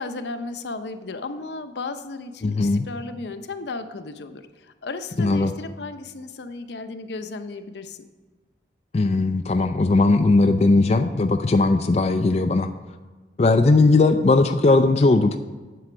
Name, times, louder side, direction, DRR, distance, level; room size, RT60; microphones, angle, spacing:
voice 1, 0.0-8.0, left 3 dB, 75° left, 9 dB, 0.6 m, -34 dB
voice 2, 2.4-2.9 5.2-5.5 8.9-12.7 13.4-15.4, left 3 dB, 35° left, 7 dB, 0.4 m, -18 dB
7.7 x 7.7 x 6.1 m, 1.3 s
head